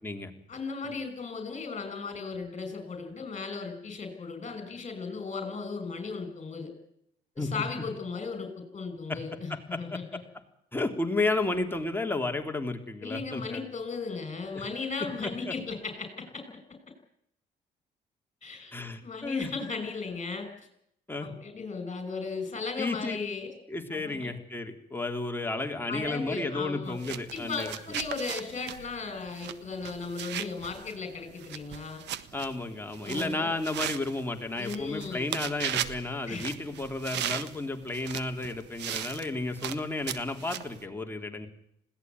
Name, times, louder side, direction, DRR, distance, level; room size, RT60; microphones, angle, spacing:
voice 1, 0.5-6.7 7.4-10.2 13.0-16.5 18.4-18.7 19.0-20.5 21.2-23.5 23.9-24.3 25.9-27.0 27.3-32.0 33.0-33.5 34.6-35.3 36.3-36.6 37.1-37.2, left 4 dB, 35° left, 7 dB, 5.8 m, -36 dB
voice 2, 9.5-10.0 10.7-13.7 14.5-14.6 15.2-15.5 18.7-19.5 21.1-21.3 22.8-23.2 23.7-27.7 32.3-41.5, left 2 dB, 10° left, 4 dB, 3.5 m, -32 dB
sound 1, 26.9-40.8, right 11 dB, 80° right, 1.5 m, -38 dB
21.0 x 17.0 x 9.5 m, 0.74 s
cardioid pair, 80°, 18 cm